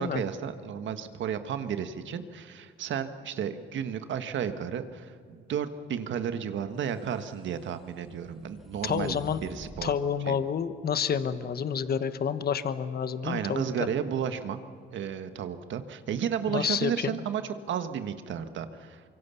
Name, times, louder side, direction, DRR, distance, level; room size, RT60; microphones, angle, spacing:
voice 1, 0.0-9.9 10.3-10.4 13.2-14.6 14.9-19.0, right 8 dB, 70° right, 9 dB, 1.6 m, -33 dB
sound 1, 7.0-10.0, equal, ahead, 1.7 m, -48 dB
voice 2, 8.8-9.4 9.8-13.6 16.5-17.2, left 7 dB, 50° left, 11 dB, 1.3 m, -29 dB
25.0 x 23.5 x 7.1 m, 2.3 s
cardioid pair, 90°, 20 cm